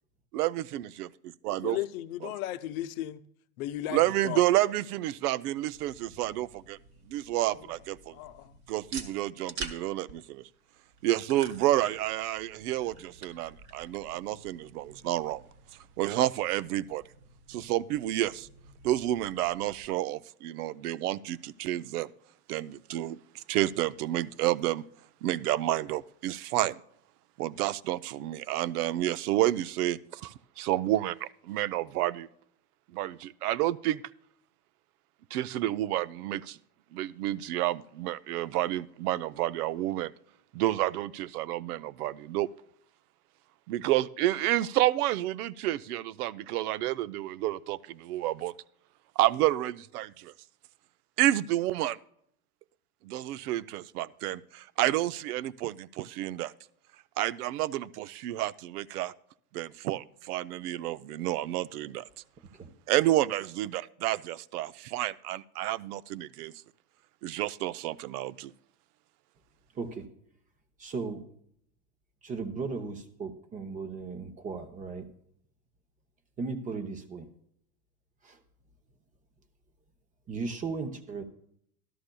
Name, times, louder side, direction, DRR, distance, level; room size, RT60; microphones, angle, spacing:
voice 1, 0.3-1.1 1.4-1.8 3.9-6.8 7.1-8.2 8.7-10.4 11.0-15.4 16.0-17.0 17.5-18.5 18.8-22.1 22.5-24.8 25.2-26.8 27.4-32.3 32.9-34.0 35.3-36.6 36.9-40.1 40.5-42.5 43.7-48.5 49.2-50.3 51.2-52.0 53.0-56.5 57.2-59.1 59.5-62.1 62.9-66.5 67.2-68.5, right 14 dB, 80° right, 0.6 m, -30 dB
voice 2, 1.6-3.2 3.6-4.4 7.6-7.7 8.1-8.6, left 14 dB, 65° left, 0.8 m, -35 dB
sound 1, 5.6-19.8, right 4 dB, 40° right, 1.2 m, -48 dB
voice 3, 69.8-70.1 70.8-71.2 72.2-75.0 76.4-77.3 78.2-78.4 80.3-81.2, right 4 dB, 15° right, 0.7 m, -36 dB
13.0 x 13.0 x 2.2 m
supercardioid pair, 150°, 45 cm